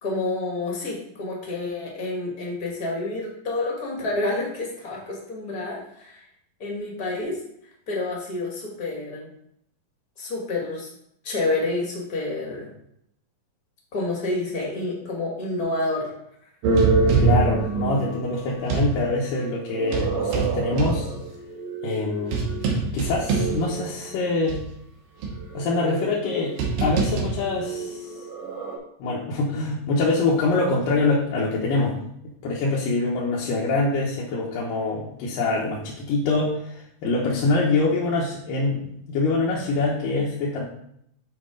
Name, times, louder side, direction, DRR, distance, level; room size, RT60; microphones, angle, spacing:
voice 1, 0.0-6.2 6.6-7.4 7.9-9.3 10.2-10.9 11.2-12.7 13.9-16.1, left 2 dB, 35° left, -2 dB, 1.7 m, -28 dB
sound 1, 16.6-18.9 19.7-24.1 24.5-24.6 25.2-28.8, right 4 dB, 80° right, 2.8 m, -25 dB
voice 2, 17.2-21.1 21.8-24.6 25.5-28.1 29.0-32.0 32.4-40.6, left 3 dB, 80° left, -4 dB, 2.6 m, -25 dB
7.6 x 5.4 x 3.7 m, 0.73 s
omnidirectional pair, 3.9 m